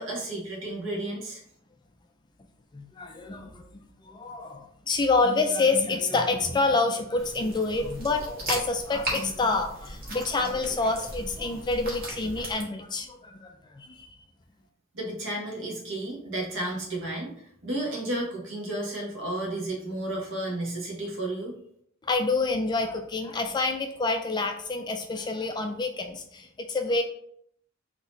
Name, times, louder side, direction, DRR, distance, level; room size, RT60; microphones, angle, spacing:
voice 1, 0.0-1.4 14.9-21.6, right 1 dB, 60° right, -1 dB, 1.4 m, -32 dB
voice 2, 2.7-14.2 22.0-27.0, left 3 dB, 20° left, 4 dB, 0.3 m, -27 dB
sound 1, 7.2-12.6, right 1 dB, 45° right, 1.5 m, -37 dB
4.0 x 2.9 x 4.1 m, 0.67 s
head